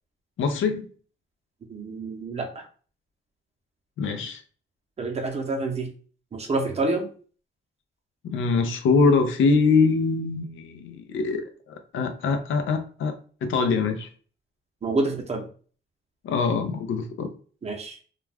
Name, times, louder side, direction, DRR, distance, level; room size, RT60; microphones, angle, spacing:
voice 1, 0.4-0.9 4.0-4.4 8.2-14.1 16.2-17.3, left 4 dB, 80° left, 7 dB, 0.5 m, -23 dB
voice 2, 1.7-2.7 5.0-5.9 6.3-7.1 14.8-15.5 17.6-18.0, right 2 dB, 30° right, 3 dB, 0.6 m, -28 dB
2.3 x 2.2 x 3.2 m, 0.42 s
cardioid pair, 120°, 20 cm